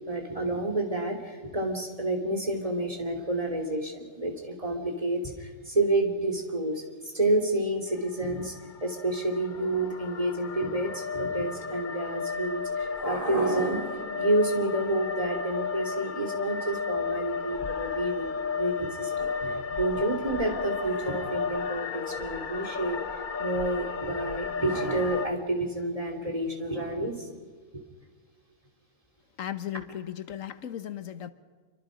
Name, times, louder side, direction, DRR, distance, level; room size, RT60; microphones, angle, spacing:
voice 1, 0.1-8.5 8.8-23.0 23.4-27.3 27.7-27.8, right 1 dB, 25° right, 2 dB, 2.8 m, -29 dB
sound 1, 7.9-25.3, left 5 dB, 45° left, 0.8 m, -33 dB
voice 2, 29.4-31.3, left 10 dB, 85° left, 12 dB, 1.3 m, -36 dB
27.5 x 24.0 x 5.1 m, 1.5 s
omnidirectional pair, 1.3 m